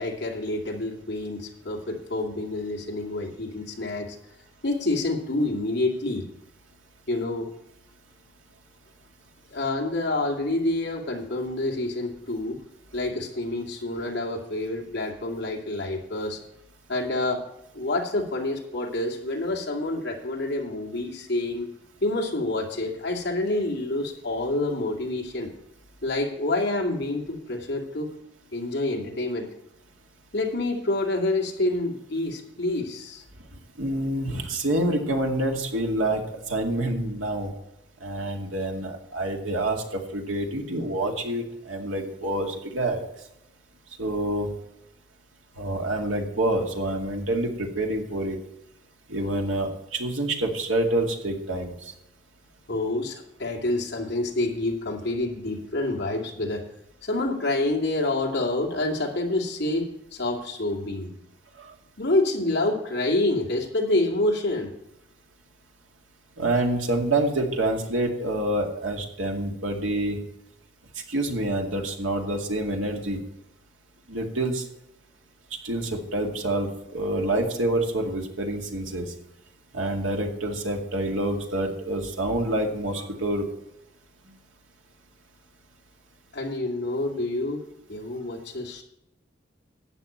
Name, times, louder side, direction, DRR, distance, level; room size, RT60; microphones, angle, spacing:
voice 1, 0.0-4.2 4.6-6.3 7.1-7.5 9.5-12.6 12.9-16.4 16.9-17.4 17.7-21.7 22.0-25.5 26.0-28.1 28.5-29.5 30.3-33.2 52.7-56.6 57.0-61.1 62.0-64.7 86.3-87.6 87.9-88.8, left 2 dB, 55° left, -1 dB, 2.5 m, -27 dB
voice 2, 33.8-37.5 38.0-43.0 44.0-44.5 45.6-48.4 49.1-51.8 61.6-61.7 66.4-70.2 71.1-73.2 74.1-74.6 75.6-79.1 79.7-83.4, right 1 dB, 90° right, 1 dB, 2.2 m, -27 dB
12.5 x 8.9 x 4.5 m, 0.83 s
head